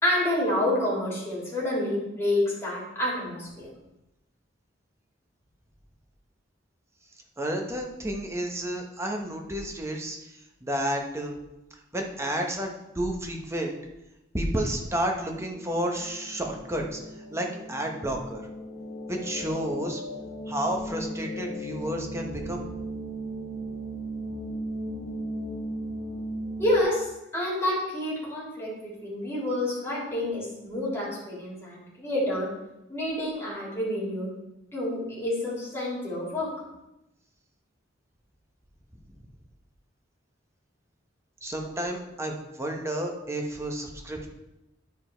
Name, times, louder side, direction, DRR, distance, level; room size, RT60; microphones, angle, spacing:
voice 1, 0.0-3.7 26.6-27.1 27.3-32.5 32.9-34.3 34.7-36.5, left 1 dB, 15° left, -6 dB, 3.4 m, -28 dB
voice 2, 7.4-10.2 10.6-11.4 11.9-12.7 12.9-13.8 14.3-17.0 17.3-18.4 19.1-20.0 20.5-22.6 41.4-44.3, right 1 dB, 15° right, 1 dB, 1.1 m, -31 dB
sound 1, 15.3-26.8, equal, 45° left, 2.4 m, -37 dB
10.5 x 5.1 x 4.5 m, 0.93 s
head